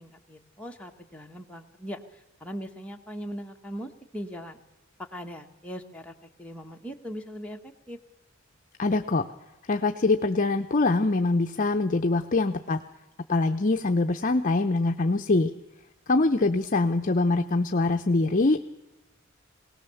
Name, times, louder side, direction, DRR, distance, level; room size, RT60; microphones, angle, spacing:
voice 1, 0.0-4.6 5.0-8.0, equal, 5° left, 1 dB, 1.3 m, -40 dB
voice 2, 8.8-9.3 9.7-12.8 13.3-15.5 16.1-18.6, left 3 dB, 40° left, 6 dB, 0.7 m, -24 dB
20.5 x 18.0 x 7.0 m, 1.0 s
head